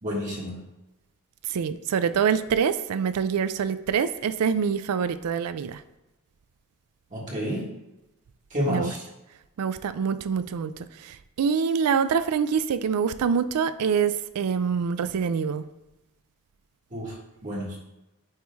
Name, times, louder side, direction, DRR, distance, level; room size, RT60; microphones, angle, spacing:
voice 1, 0.0-0.6 7.1-7.6 8.5-9.0 16.9-17.1 17.4-17.8, equal, 35° right, -4 dB, 1.6 m, -29 dB
voice 2, 1.5-5.8 8.7-8.9 9.6-10.7 11.0-15.6, right 6 dB, 85° right, 13 dB, 0.4 m, -25 dB
9.0 x 3.1 x 3.5 m, 0.97 s
head